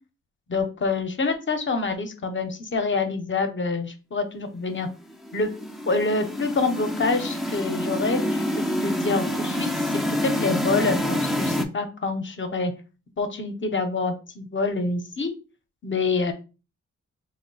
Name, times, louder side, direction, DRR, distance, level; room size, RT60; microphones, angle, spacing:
voice 1, 0.5-4.9 5.3-5.5 5.9-8.4 8.8-9.7 10.2-12.7 13.2-15.3 15.8-16.3, left 3 dB, 40° left, 7 dB, 0.7 m, -26 dB
sound 1, 5.2-11.7, equal, ahead, 0.4 m, -27 dB
3.1 x 2.1 x 3.8 m, 0.32 s
cardioid pair, 85°, 29 cm